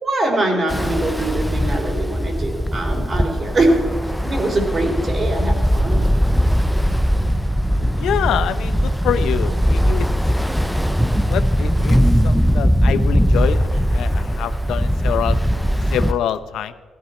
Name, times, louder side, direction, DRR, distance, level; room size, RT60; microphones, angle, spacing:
voice 1, 0.0-3.7 4.3-6.0 7.8-7.9, right 2 dB, 40° right, 2 dB, 3.9 m, -22 dB
Ocean, 0.7-16.1, equal, ahead, 0.5 m, -19 dB
voice 2, 8.0-10.1 11.2-12.0 12.2-15.4 15.9-16.7, left 10 dB, 80° left, 11 dB, 0.8 m, -25 dB
16.5 x 13.5 x 4.4 m, 1.3 s
cardioid pair, 90°, 0 cm